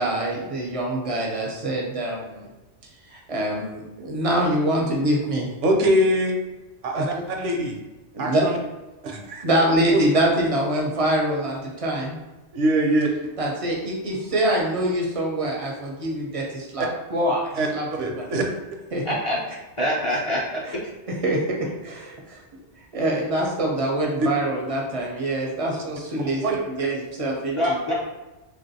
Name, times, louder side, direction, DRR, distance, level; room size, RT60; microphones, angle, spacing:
voice 1, 0.0-2.5 3.1-5.5 6.9-7.2 8.1-8.4 9.4-12.1 13.4-17.4 17.7-18.3 18.9-19.0 20.6-20.7 21.2-21.4 21.8-22.4 22.9-27.9, right 1 dB, 45° right, -2 dB, 0.4 m, -25 dB
voice 2, 5.6-6.4 6.8-7.8 8.2-8.6 9.0-9.4 9.9-10.0 12.5-13.1 16.8-16.9 17.6-17.7 18.0-18.4 26.4-26.6, right 1 dB, 75° right, 2 dB, 0.9 m, -22 dB
voice 3, 19.1-19.4 19.8-20.6 27.6-27.9, equal, 40° left, -6 dB, 0.4 m, -24 dB
3.2 x 2.5 x 2.7 m, 1.1 s
omnidirectional pair, 1.2 m